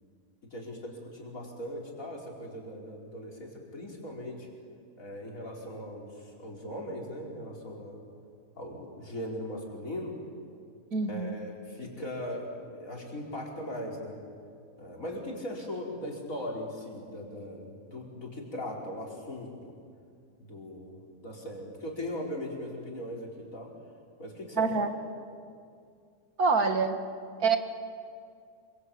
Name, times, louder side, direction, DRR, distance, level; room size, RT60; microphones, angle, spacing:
voice 1, 0.4-4.5 5.0-8.0 8.6-10.2 11.1-14.2 14.8-19.7 20.4-23.7 24.2-24.7, left 1 dB, 55° left, -1 dB, 5.1 m, -39 dB
voice 2, 10.9-11.3 24.6-24.9 26.4-27.0 27.4-27.6, right 4 dB, 65° right, 6 dB, 2.4 m, -25 dB
27.5 x 24.5 x 8.7 m, 2.3 s
omnidirectional pair, 1.7 m